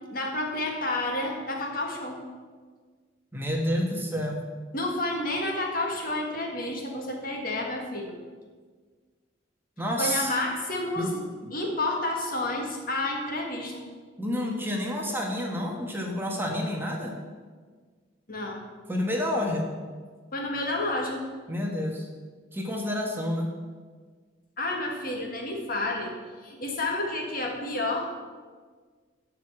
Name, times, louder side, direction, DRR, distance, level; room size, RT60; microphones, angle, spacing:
voice 1, 0.1-2.2 4.7-8.1 10.0-11.2 11.5-13.9 18.3-18.6 20.3-21.3 24.6-26.1 26.4-28.1, left 2 dB, 50° left, 1 dB, 1.7 m, -30 dB
voice 2, 3.3-4.4 9.8-10.4 11.0-11.1 14.2-17.1 18.9-19.7 21.5-22.1 22.5-23.5, left 1 dB, 10° right, 0 dB, 1.3 m, -29 dB
12.5 x 4.8 x 7.3 m, 1.5 s
head